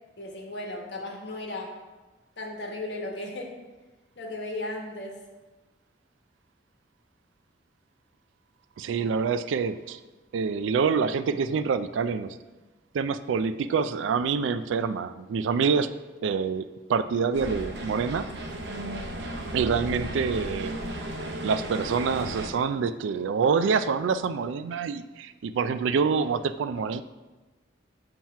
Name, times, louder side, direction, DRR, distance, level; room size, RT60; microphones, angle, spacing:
voice 1, 0.2-1.8 2.4-3.6 4.2-5.2, left 2 dB, 65° left, 0 dB, 1.1 m, -35 dB
voice 2, 8.8-10.0 10.3-12.4 12.9-15.9 16.2-18.3 19.5-20.8 21.4-27.0, right 5 dB, 90° right, 13 dB, 0.3 m, -26 dB
sound 1, 17.3-22.5, right 1 dB, 70° right, 0.7 m, -35 dB
7.3 x 3.0 x 5.5 m, 1.2 s
head